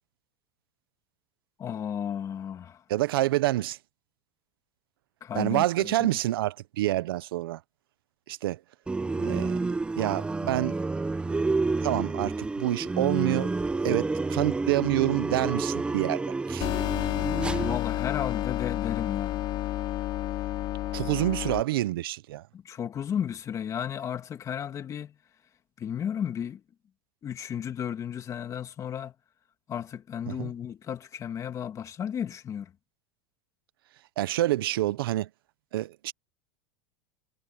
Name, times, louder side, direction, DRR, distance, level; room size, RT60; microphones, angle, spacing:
voice 1, 1.6-2.8 5.2-6.2 17.6-19.4 22.5-25.1 25.8-26.6 27.2-29.1 29.7-32.7, left 8 dB, 25° left, 2.5 m, -34 dB
voice 2, 2.9-3.8 5.3-7.6 8.3-8.6 9.2-10.8 11.8-13.5 13.8-16.7 20.9-22.4 30.3-30.5 34.2-35.3 35.7-36.1, right 15 dB, 90° right, 0.9 m, -27 dB
sound 1, 8.9-17.8, right 3 dB, 10° right, 0.7 m, -29 dB
sound 2, 16.6-21.6, left 15 dB, 45° left, 3.9 m, -30 dB
supercardioid pair, 140°, 12 cm